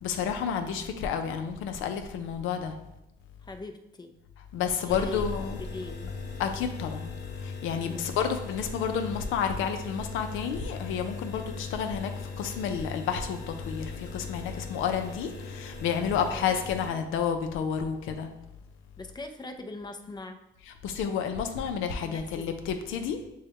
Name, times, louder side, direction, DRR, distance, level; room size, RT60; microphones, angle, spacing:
voice 1, 0.0-2.8 4.5-5.6 6.4-7.1 7.4-12.1 12.4-18.3 20.8-23.2, left 7 dB, 90° left, 6 dB, 0.5 m, -30 dB
voice 2, 3.4-4.2 4.8-5.3 5.6-6.1 7.8-8.1 16.2-16.5 19.0-20.4 22.0-22.5, left 2 dB, 20° left, 6 dB, 0.5 m, -41 dB
sound 1, 4.9-16.9, left 4 dB, 55° left, 1.0 m, -39 dB
6.2 x 2.3 x 3.5 m, 0.86 s
cardioid pair, 90°, 20 cm